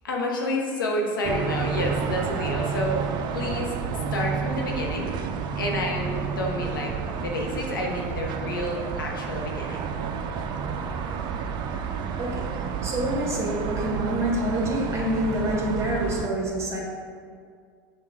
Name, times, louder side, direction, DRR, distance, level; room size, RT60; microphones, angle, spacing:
voice 1, 0.0-5.1 5.5-9.9, left 1 dB, 85° left, 0 dB, 0.7 m, -30 dB
sound 1, 1.2-16.3, right 6 dB, 45° right, 0.3 m, -30 dB
voice 2, 12.8-16.8, right 1 dB, 25° right, -2 dB, 1.2 m, -27 dB
6.2 x 2.3 x 3.5 m, 2.1 s
hypercardioid pair, 85°, 11 cm